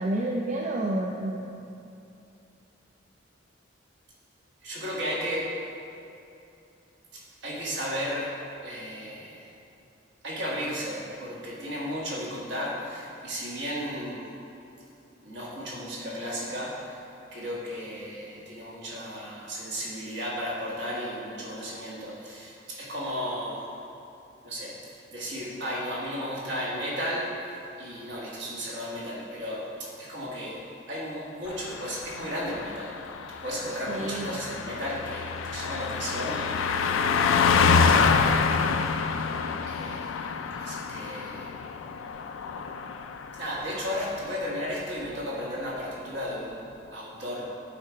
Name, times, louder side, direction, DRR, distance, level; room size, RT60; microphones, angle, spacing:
voice 1, 0.0-1.6 33.9-34.4, right 1 dB, 35° right, -1 dB, 0.4 m, -29 dB
voice 2, 4.6-5.5 7.1-8.3 8.6-9.5 10.2-14.3 15.2-17.0 17.3-23.7 24.4-30.6 30.9-33.0 33.4-36.7 37.5-38.8 39.7-41.6 43.3-47.5, equal, 60° right, -5 dB, 1.5 m, -34 dB
Car passing by, 31.5-43.5 43.8-44.0, left 5 dB, 85° left, 0.3 m, -27 dB
8.7 x 3.8 x 4.6 m, 2.7 s
head